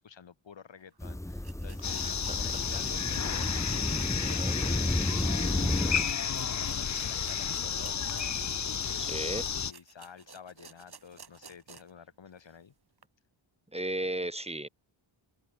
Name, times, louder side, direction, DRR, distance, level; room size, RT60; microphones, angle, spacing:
voice 1, 0.0-2.1 2.4-12.7, left 7 dB, 60° left, 6.6 m, -51 dB
sound 1, 0.9-1.0 1.4-12.0 12.4-12.5 13.0-13.1, right 5 dB, 50° right, 6.4 m, -55 dB
sound 2, 1.0-6.1, left 1 dB, 5° left, 1.5 m, -32 dB
sound 3, 1.8-9.7, left 7 dB, 35° left, 0.8 m, -32 dB
voice 2, 2.0-2.4 4.2-4.6 9.0-9.4 13.7-14.7, right 1 dB, 10° right, 3.7 m, -35 dB
cardioid pair, 70°, 49 cm